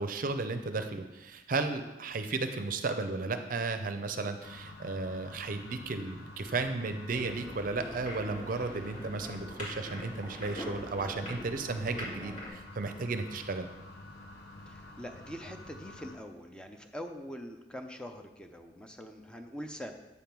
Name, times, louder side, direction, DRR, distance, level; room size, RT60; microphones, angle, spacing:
voice 1, 0.0-13.7, right 3 dB, 50° right, 8 dB, 0.5 m, -34 dB
sound 1, 4.4-16.2, left 1 dB, 70° left, 1.0 m, -49 dB
sound 2, 7.1-12.5, equal, 45° left, 2.2 m, -43 dB
voice 2, 14.7-19.9, equal, 5° left, 4 dB, 0.5 m, -43 dB
8.3 x 3.5 x 5.8 m, 1.0 s
head